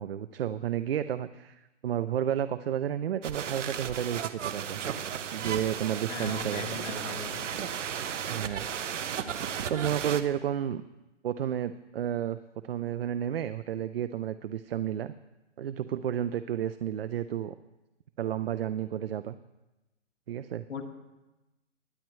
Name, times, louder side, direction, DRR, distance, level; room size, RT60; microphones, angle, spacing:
voice 1, 0.0-4.8 5.3-6.7 8.3-8.7 9.3-10.8 11.2-12.4 12.6-15.1 15.6-17.5 18.2-19.4 20.3-20.6, right 10 dB, 55° right, 12 dB, 0.5 m, -31 dB
sound 1, 3.2-10.2, right 8 dB, 80° right, 0.9 m, -34 dB
voice 2, 6.1-7.5 20.7-20.9, left 6 dB, 85° left, 1 dB, 1.9 m, -39 dB
21.0 x 9.2 x 3.1 m, 1.0 s
hypercardioid pair, 160°, 36 cm